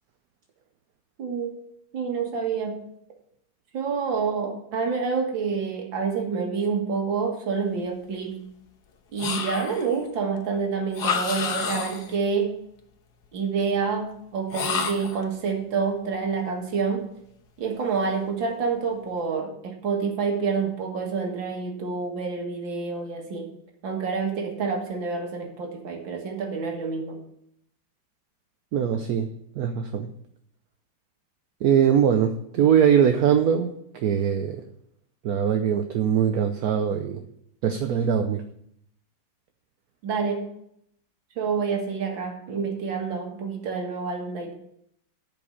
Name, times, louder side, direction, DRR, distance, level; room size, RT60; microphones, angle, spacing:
voice 1, 1.2-1.5 1.9-2.8 3.7-8.4 9.1-12.6 13.3-17.0 17.6-23.5 23.8-27.2 40.0-40.5 41.4-44.5, right 5 dB, 85° right, 2 dB, 2.4 m, -28 dB
sound 1, 9.2-10.0 10.9-12.2 14.5-15.2, left 6 dB, 65° left, 1.6 m, -29 dB
voice 2, 28.7-29.3 29.6-30.1 31.6-34.6 35.2-37.2 37.6-38.4, right 8 dB, 65° right, 7 dB, 1.0 m, -22 dB
10.5 x 5.2 x 8.4 m, 0.72 s
omnidirectional pair, 2.0 m